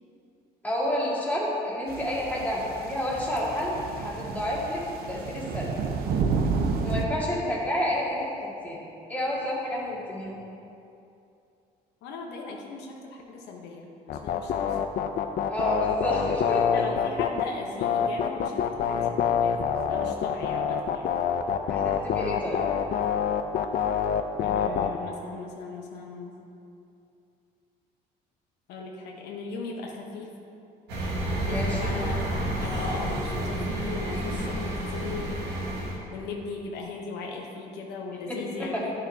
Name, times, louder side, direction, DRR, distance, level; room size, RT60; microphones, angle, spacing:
voice 1, 0.6-5.7 6.8-8.3 8.6-8.8 9.1-10.4 15.5-16.8 21.7-22.6 31.4-31.9 38.3-38.8, left 1 dB, 10° left, -6 dB, 1.9 m, -29 dB
sound 1, 1.9-7.0, right 5 dB, 65° right, 0.7 m, -30 dB
voice 2, 12.0-14.8 16.7-21.1 24.4-26.3 28.7-30.3 31.3-32.2 32.6-35.4 36.1-38.9, left 3 dB, 85° left, 0 dB, 0.9 m, -38 dB
sound 2, 14.1-17.4 17.8-25.0, left 8 dB, 60° left, 0.5 m, -26 dB
sound 3, 30.9-36.0, right 1 dB, 85° right, 1.5 m, -30 dB
11.0 x 6.4 x 2.8 m, 2.7 s
cardioid pair, 110°, 17 cm